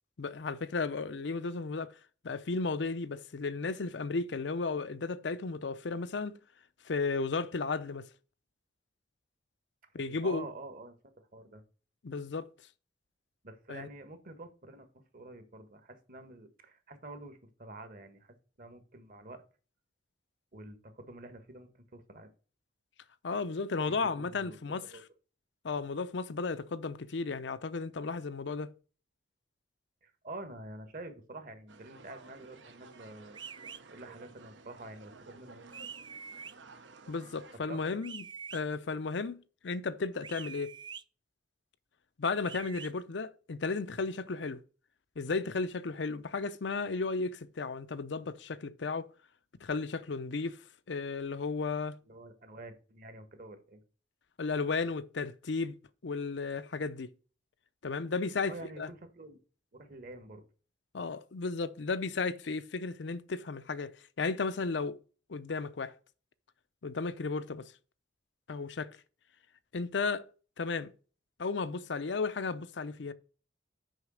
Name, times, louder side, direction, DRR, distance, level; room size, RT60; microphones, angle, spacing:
voice 1, 0.2-1.9 2.2-6.4 6.8-8.1 9.9-10.5 12.0-12.5 13.7-13.9 23.2-24.9 25.6-28.7 37.1-38.2 38.5-40.8 42.2-44.6 45.2-49.1 49.6-52.0 54.4-55.8 56.0-57.1 57.8-58.9 60.9-65.0 65.3-65.9 66.8-67.7 68.5-69.0 69.7-70.3 70.6-70.9 71.4-73.1, left 4 dB, 70° left, 0.6 m, -34 dB
voice 2, 10.1-11.6 13.4-19.4 20.5-22.3 23.8-24.6 24.9-25.0 30.0-35.6 37.7-38.0 52.0-53.8 58.5-59.4 59.7-60.4, right 2 dB, 50° right, 1.4 m, -48 dB
sound 1, 31.7-37.6, right 3 dB, 80° right, 1.0 m, -54 dB
sound 2, 33.3-33.8 35.7-36.5 38.0-38.6 40.2-41.0 42.4-42.9, right 6 dB, 25° right, 0.3 m, -45 dB
6.4 x 5.7 x 6.3 m
head